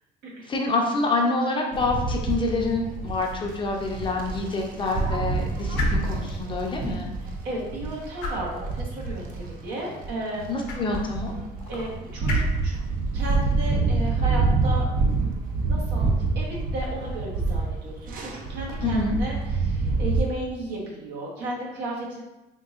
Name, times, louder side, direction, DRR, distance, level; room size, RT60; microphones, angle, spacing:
voice 1, 0.5-7.1 10.5-11.3 18.8-19.1, left 2 dB, 30° left, 0 dB, 0.6 m, -27 dB
sound 1, 1.7-20.2, right 3 dB, 55° right, 0.5 m, -27 dB
sound 2, 2.9-16.3, left 3 dB, 85° left, 0.7 m, -40 dB
voice 2, 7.4-10.5 11.7-12.7 13.1-14.8 15.2-22.2, right 1 dB, 85° right, -4 dB, 1.1 m, -34 dB
3.7 x 2.6 x 2.4 m, 1.0 s
cardioid pair, 110°, 17 cm